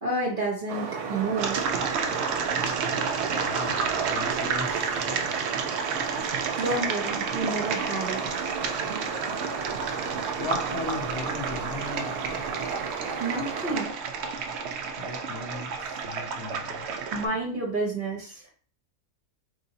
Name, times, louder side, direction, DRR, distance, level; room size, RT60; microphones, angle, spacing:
voice 1, 0.0-1.8 6.3-8.4 13.2-13.9 17.1-18.4, right 2 dB, 40° right, -2 dB, 0.9 m, -30 dB
sound 1, 0.7-13.8, right 6 dB, 90° right, 1.3 m, -34 dB
sound 2, 1.4-17.3, right 5 dB, 65° right, 0.6 m, -31 dB
voice 2, 3.4-5.4 10.4-12.7 15.0-16.9, left 3 dB, 60° left, 0 dB, 0.8 m, -38 dB
3.3 x 2.7 x 4.0 m, 0.43 s
omnidirectional pair, 1.6 m